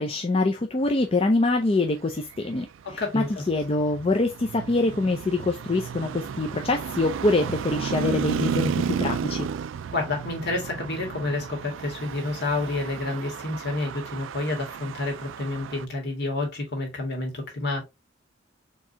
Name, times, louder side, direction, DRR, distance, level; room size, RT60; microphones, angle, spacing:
voice 1, 0.0-9.5, left 2 dB, 30° left, 0.5 m, -25 dB
Traffic noise roadway noise, 2.1-15.9, right 7 dB, 85° right, 0.3 m, -33 dB
voice 2, 2.8-3.4 9.9-17.8, left 2 dB, 60° left, 2.0 m, -29 dB
4.6 x 3.6 x 2.8 m
head